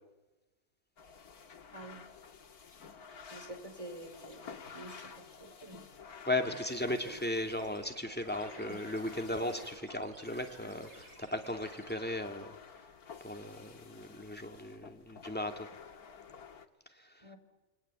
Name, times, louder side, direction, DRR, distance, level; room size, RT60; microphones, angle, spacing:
sound 1, 1.0-16.7, left 6 dB, 75° left, 2.1 m, -52 dB
voice 1, 1.7-2.0 3.3-5.1 5.4-5.8 6.9-7.2 8.6-8.8 17.2-17.4, right 1 dB, 20° right, 5 dB, 5.0 m, -48 dB
voice 2, 6.3-12.6 13.2-15.7 16.9-17.2, left 1 dB, 5° left, 4 dB, 2.5 m, -36 dB
sound 2, 6.4-12.0, right 3 dB, 90° right, 4.2 m, -56 dB
28.5 x 23.0 x 9.0 m, 1.1 s
omnidirectional pair, 1.6 m